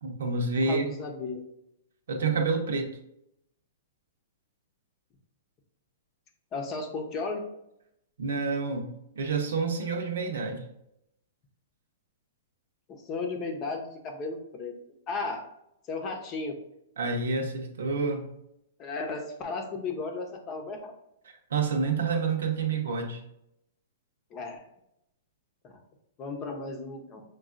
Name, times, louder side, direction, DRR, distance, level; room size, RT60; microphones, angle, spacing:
voice 1, 0.0-0.9 2.1-2.9 8.2-8.9 9.2-10.7 17.0-18.2 21.5-23.2, right 4 dB, 80° right, 3 dB, 0.8 m, -28 dB
voice 2, 0.7-1.4 6.5-7.4 13.1-14.7 15.1-15.4 15.9-16.5 18.8-20.9 24.3-24.6 25.6-25.7 26.2-27.2, left 3 dB, 25° left, 3 dB, 0.7 m, -34 dB
6.1 x 2.3 x 2.5 m, 0.79 s
hypercardioid pair, 150°, 0 cm